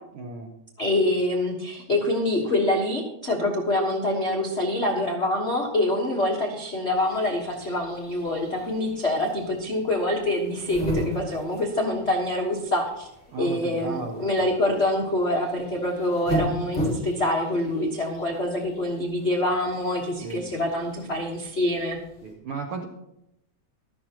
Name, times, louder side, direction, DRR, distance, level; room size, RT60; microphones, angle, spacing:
voice 1, 0.1-0.5 13.3-14.4 20.2-20.4 22.2-22.9, right 4 dB, 75° right, 2 dB, 1.3 m, -34 dB
voice 2, 0.8-13.1 13.4-22.0, left 1 dB, 60° left, -1 dB, 0.6 m, -25 dB
sound 1, 6.9-22.3, equal, 25° left, 4.4 m, -36 dB
15.0 x 12.5 x 2.9 m, 0.85 s
omnidirectional pair, 3.5 m